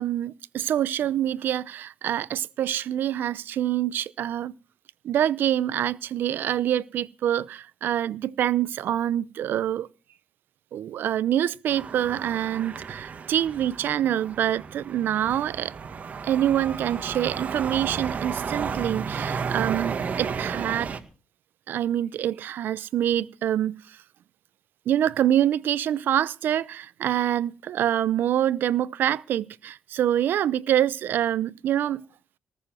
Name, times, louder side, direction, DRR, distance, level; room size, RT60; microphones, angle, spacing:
voice 1, 0.0-4.5 5.0-9.9 10.7-15.7 16.2-20.9 21.7-24.0 24.9-32.0, right 11 dB, 80° right, 0.7 m, -26 dB
sound 1, 11.7-21.0, right 6 dB, 50° right, 1.9 m, -33 dB
19.5 x 7.0 x 7.5 m
cardioid pair, 105°, 3 cm